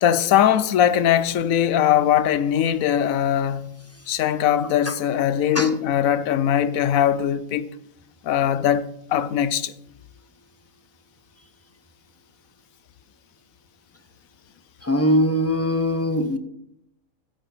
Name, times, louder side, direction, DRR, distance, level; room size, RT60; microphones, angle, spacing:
voice 1, 0.0-3.6 4.1-7.7 8.2-9.7, left 10 dB, 90° left, 1.1 m, -20 dB
voice 2, 14.8-16.4, equal, 15° left, 0.7 m, -21 dB
11.5 x 8.3 x 5.6 m
omnidirectional pair, 1.4 m